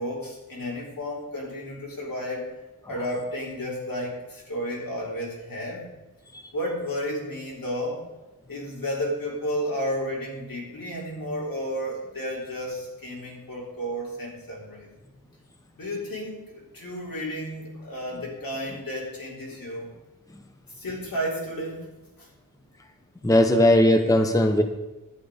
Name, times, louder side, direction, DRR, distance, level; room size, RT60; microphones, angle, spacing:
voice 1, 0.0-2.5 2.9-5.9 6.5-8.0 8.5-14.9 15.8-19.9 20.8-21.9 22.2-22.3, equal, 75° left, -3 dB, 3.9 m, -32 dB
voice 2, 23.2-24.6, left 1 dB, 10° left, 6 dB, 0.9 m, -18 dB
11.0 x 9.1 x 5.1 m, 1.1 s
wide cardioid pair, 115°, 34 cm